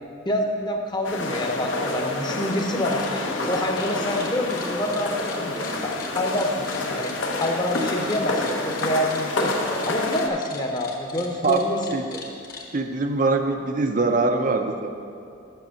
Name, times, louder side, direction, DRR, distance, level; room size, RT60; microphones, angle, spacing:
voice 1, 0.2-7.1 7.4-9.5 9.8-11.8 12.1-12.2, left 1 dB, 20° left, 2 dB, 0.8 m, -27 dB
sound 1, 1.0-10.3, left 2 dB, 75° left, 0.9 m, -28 dB
sound 2, 2.5-2.7 2.9-12.7, left 5 dB, 45° left, 1.1 m, -41 dB
voice 2, 12.7-14.9, right 3 dB, 40° right, 5 dB, 0.5 m, -22 dB
7.7 x 5.8 x 6.9 m, 2.5 s
head